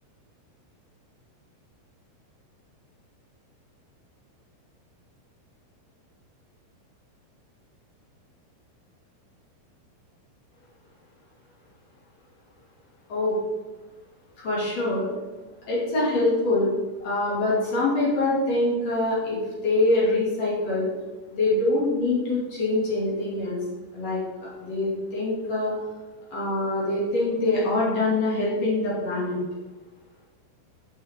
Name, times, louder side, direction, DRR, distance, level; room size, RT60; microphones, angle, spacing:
voice 1, 14.4-15.1 15.7-16.7 17.0-20.9 21.3-23.6 23.9-25.7 26.3-29.4, left 2 dB, 40° left, -7 dB, 2.7 m, -24 dB
9.4 x 6.4 x 3.7 m, 1.2 s
omnidirectional pair, 5.9 m